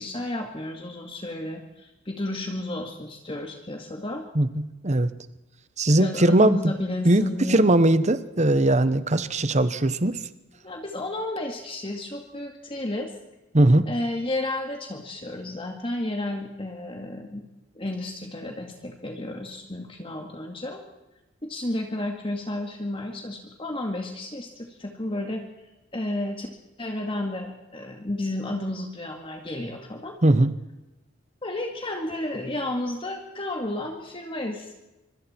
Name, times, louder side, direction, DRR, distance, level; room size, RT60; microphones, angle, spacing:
voice 1, 0.0-4.2 6.0-7.7 10.6-13.1 13.9-17.4 17.8-20.8 21.4-25.4 25.9-26.5 26.8-30.2 31.4-34.7, left 1 dB, 25° left, 2 dB, 2.1 m, -32 dB
voice 2, 4.3-5.1 5.8-6.6 7.0-10.2 13.5-13.9 30.2-30.5, right 1 dB, 35° right, 13 dB, 1.0 m, -20 dB
25.5 x 24.5 x 4.5 m, 1.0 s
head